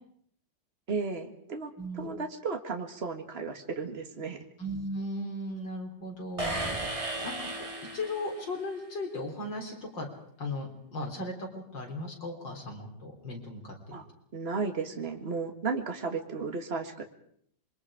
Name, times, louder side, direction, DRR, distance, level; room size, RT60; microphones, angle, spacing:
voice 1, 0.9-4.4 13.9-14.1 14.3-17.0, right 4 dB, 35° right, 5 dB, 2.0 m, -34 dB
voice 2, 1.8-2.1 4.6-6.5 7.2-7.4 7.9-10.1 10.4-14.0, left 1 dB, 70° left, 2 dB, 4.5 m, -36 dB
sound 1, 6.4-8.6, right 2 dB, 15° right, 2.0 m, -35 dB
27.5 x 22.5 x 4.9 m, 0.66 s
omnidirectional pair, 2.1 m